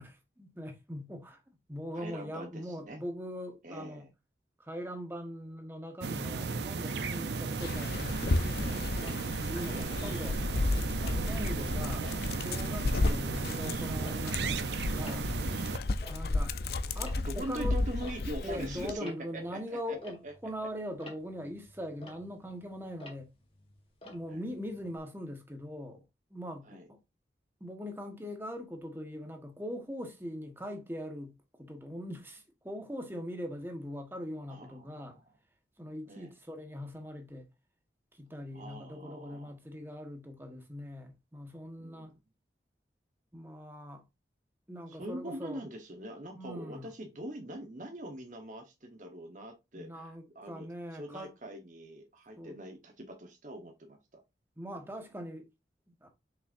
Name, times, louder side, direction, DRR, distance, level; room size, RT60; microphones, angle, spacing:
voice 1, 0.0-4.1 4.6-8.9 9.3-10.8 11.1-15.3 16.1-16.5 16.9-17.8 18.4-23.3 24.0-26.0 26.3-27.0 27.6-35.2 35.8-37.5 38.1-42.1 43.3-44.1 44.7-45.6 46.3-46.9 49.7-51.3 52.4-52.6 54.6-55.5 55.9-56.1, equal, 10° right, 1.3 m, -41 dB
voice 2, 1.9-3.0 3.6-4.1 7.6-7.8 9.7-10.0 17.2-20.0 20.2-20.3 24.2-24.4 26.7-26.8 34.5-35.2 36.1-36.3 38.5-39.5 41.8-42.1 44.9-54.2 54.6-54.9, right 1 dB, 45° right, 1.2 m, -43 dB
sound 1, 6.0-15.8, right 4 dB, 75° right, 0.6 m, -35 dB
Dog, 7.6-18.9, left 2 dB, 60° left, 0.5 m, -33 dB
Tick-tock, 9.0-10.6 11.0-11.4 11.9-14.6 14.9-25.0, left 1 dB, 30° left, 1.7 m, -53 dB
6.6 x 5.7 x 2.6 m
head